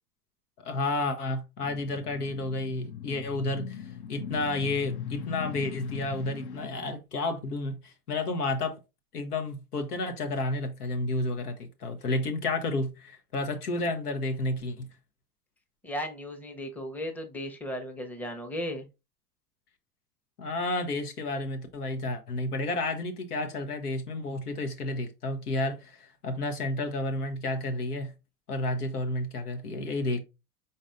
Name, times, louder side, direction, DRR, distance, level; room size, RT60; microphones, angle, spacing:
voice 1, 0.6-8.7 9.1-14.9 20.4-28.1 28.5-30.2, left 2 dB, 75° left, 1.0 m, -31 dB
sound 1, 1.6-6.7, left 9 dB, 35° left, 0.5 m, -39 dB
voice 2, 15.8-18.9, equal, 5° left, 0.8 m, -36 dB
5.1 x 4.0 x 2.5 m
figure-of-eight pair, 85°, 46 cm